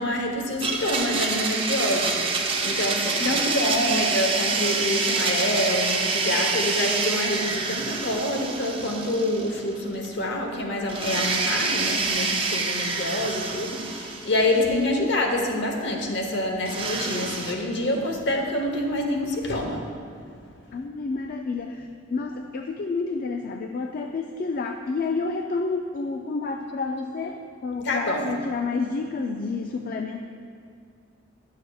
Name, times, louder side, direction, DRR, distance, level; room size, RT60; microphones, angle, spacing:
voice 1, 0.0-20.4 27.8-28.3, left 1 dB, 65° left, 2 dB, 0.9 m, -27 dB
Domestic sounds home sounds, 0.6-9.8 10.0-10.1 10.9-14.8 16.7-17.5, right 4 dB, 30° right, 0.5 m, -27 dB
voice 2, 3.2-4.1 14.7-15.1 20.7-30.2, left 4 dB, 45° left, 4 dB, 0.3 m, -29 dB
10.5 x 6.4 x 2.3 m, 2.3 s
head